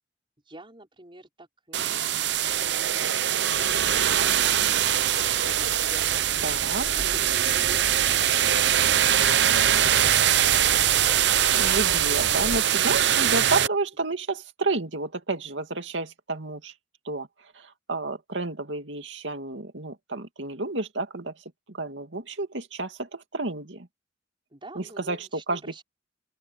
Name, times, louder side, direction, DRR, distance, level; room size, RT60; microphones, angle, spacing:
voice 1, 0.4-3.2 24.5-25.8, right 1 dB, 30° right, 5.8 m, -49 dB
sound 1, 1.7-13.7, right 10 dB, 70° right, 0.7 m, -22 dB
sound 2, 3.5-12.6, left 1 dB, 55° left, 5.1 m, -39 dB
voice 2, 6.4-6.8 11.5-16.7 17.1-17.3 17.6-21.3 21.7-23.9 24.8-25.8, right 3 dB, 90° right, 2.4 m, -31 dB
open air
head